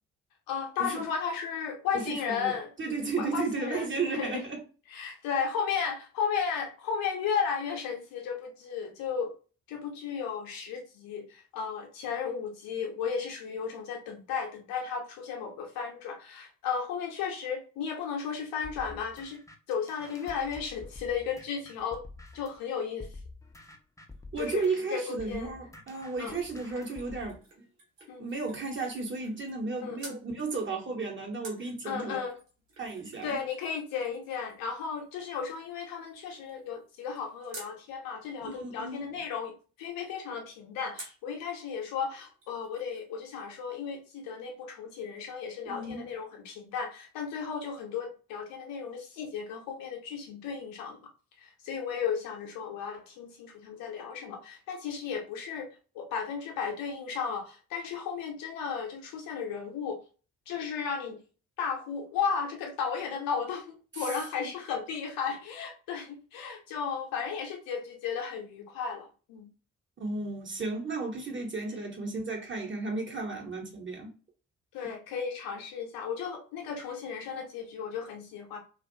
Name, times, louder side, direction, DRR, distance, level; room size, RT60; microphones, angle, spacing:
voice 1, 0.5-2.7 3.2-4.4 4.9-9.3 9.7-19.4 19.7-22.0 22.3-23.1 24.4-24.6 24.9-25.5 26.2-26.4 28.1-28.3 29.8-30.0 31.8-32.4 33.2-39.5 39.8-51.1 51.4-55.7 55.9-60.0 60.5-61.2 61.6-69.5 71.7-71.8 74.7-78.6, left 6 dB, 65° left, 0.8 m, -34 dB
voice 2, 1.9-4.6 24.3-27.4 28.2-32.2 32.8-33.4 38.4-39.1 45.6-46.0 63.9-64.1 64.4-64.5 70.0-74.1, right 3 dB, 30° right, 1.1 m, -34 dB
sound 1, 18.6-22.6 23.0-27.4, left 2 dB, 10° left, 0.6 m, -48 dB
sound 2, 26.2-29.7 30.0-30.3 31.4-37.8 41.0-41.3 41.8-41.9 42.1-43.1 43.4-43.5, right 2 dB, 90° right, 0.7 m, -52 dB
2.4 x 2.4 x 2.7 m
figure-of-eight pair, 40°, 37 cm